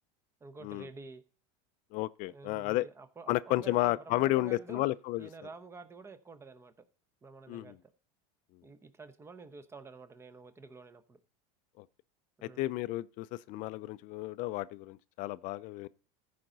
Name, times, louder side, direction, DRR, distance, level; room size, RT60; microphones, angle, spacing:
voice 1, 0.4-1.2 2.3-4.8 5.2-6.7 7.2-7.8 8.6-11.2 12.4-12.7, right 4 dB, 15° right, 0.8 m, -49 dB
voice 2, 1.9-2.9 3.3-5.3 7.5-7.8 11.8-11.9 12.4-15.9, left 17 dB, 45° left, 0.4 m, -32 dB
14.5 x 5.1 x 4.0 m
supercardioid pair, 130°, 18 cm